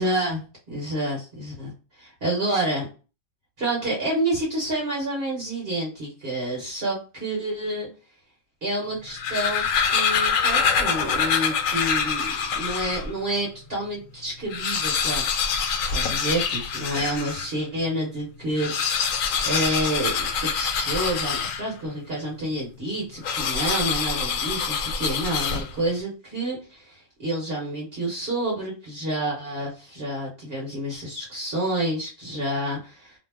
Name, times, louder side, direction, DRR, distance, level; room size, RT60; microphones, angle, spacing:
voice 1, 0.0-1.7 2.0-2.8 3.6-7.9 8.6-15.2 15.5-19.1 19.4-20.1 20.4-33.1, right 1 dB, 50° right, -4 dB, 1.2 m, -29 dB
sound 1, 9.0-13.1 13.7-13.8 14.0-14.1 14.4-17.5 18.5-21.9 23.2-25.9, left 6 dB, 80° left, 1.0 m, -25 dB
2.7 x 2.0 x 3.3 m, 0.34 s
omnidirectional pair, 1.4 m